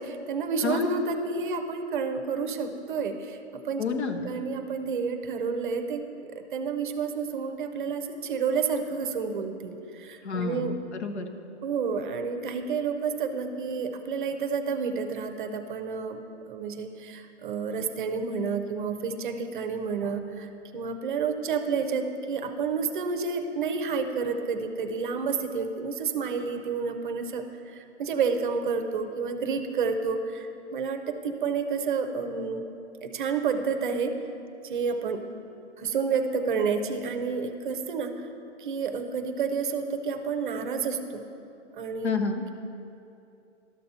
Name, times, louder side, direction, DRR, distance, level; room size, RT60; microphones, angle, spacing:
voice 1, 0.0-3.8 4.2-10.8 11.6-32.6 33.0-34.2 34.6-35.2 35.8-38.3 38.6-41.2 41.7-42.1, right 5 dB, 45° right, 7 dB, 0.6 m, -30 dB
voice 2, 0.6-1.0 3.8-4.3 10.2-11.3 42.0-42.4, left 4 dB, 65° left, 5 dB, 0.9 m, -29 dB
12.5 x 6.6 x 2.8 m, 2.7 s
hypercardioid pair, 155°, 35 cm